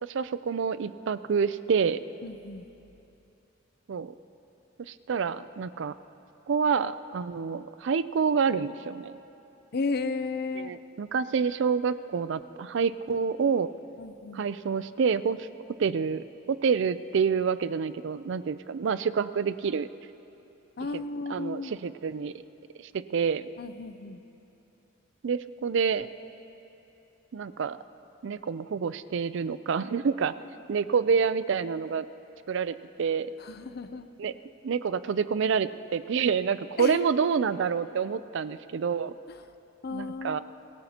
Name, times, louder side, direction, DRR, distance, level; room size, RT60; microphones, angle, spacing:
voice 1, 0.0-2.0 3.9-4.1 4.9-5.9 6.5-9.2 10.6-13.7 14.3-15.5 15.8-19.9 20.9-21.0 21.3-22.3 22.8-23.5 25.2-26.1 27.3-27.8 28.2-30.3 30.7-32.1 32.5-33.3 34.2-34.3 34.6-39.1 39.9-40.4, right 6 dB, 65° right, 14 dB, 0.4 m, -28 dB
voice 2, 2.2-2.7 9.7-10.7 14.0-14.5 20.8-21.7 23.6-24.2 33.4-34.4 36.8-37.2 39.3-39.4 39.8-40.4, left 3 dB, 55° left, 11 dB, 0.6 m, -34 dB
25.5 x 17.5 x 2.9 m, 2.9 s
head